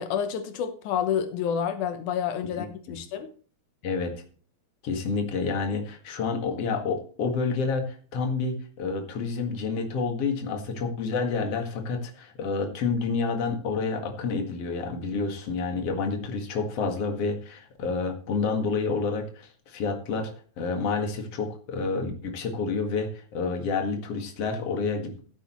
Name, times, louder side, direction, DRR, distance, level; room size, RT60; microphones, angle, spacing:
voice 1, 0.0-3.3, left 8 dB, 85° left, 2.6 m, -29 dB
voice 2, 4.8-20.3 20.6-25.2, left 4 dB, 55° left, 2.8 m, -29 dB
15.5 x 8.5 x 3.1 m
omnidirectional pair, 3.4 m